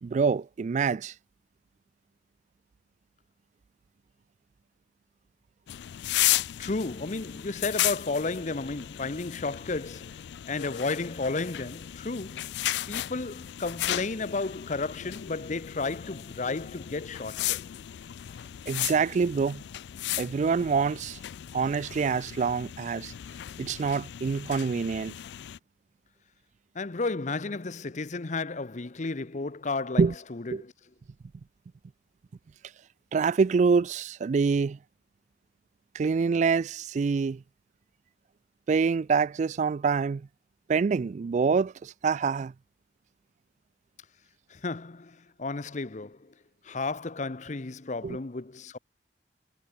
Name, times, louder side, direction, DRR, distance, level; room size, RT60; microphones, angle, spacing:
voice 1, 0.0-1.1 18.7-19.6 20.2-21.2 21.5-23.1 23.6-25.1 30.0-30.1 30.5-30.6 33.1-34.8 35.9-37.4 38.7-40.3 40.7-42.5 48.0-48.2, right 5 dB, 40° right, 0.3 m, -26 dB
sound 1, 5.7-25.6, left 14 dB, 70° left, 0.3 m, -35 dB
voice 2, 6.6-12.6 12.9-17.6 26.7-30.7 44.5-46.3 46.6-48.8, left 3 dB, 45° left, 0.8 m, -33 dB
head